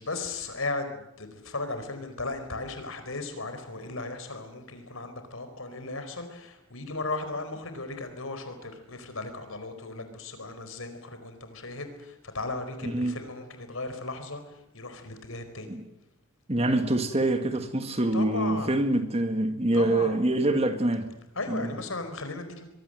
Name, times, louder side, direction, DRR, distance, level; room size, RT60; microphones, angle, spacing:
voice 1, 0.0-15.8 18.1-18.8 19.7-20.2 21.3-22.6, left 3 dB, 75° left, 4.5 m, -36 dB
voice 2, 12.8-13.2 15.7-15.8 16.5-21.1 21.5-21.7, right 1 dB, 30° right, 2.0 m, -25 dB
24.5 x 22.5 x 7.8 m
head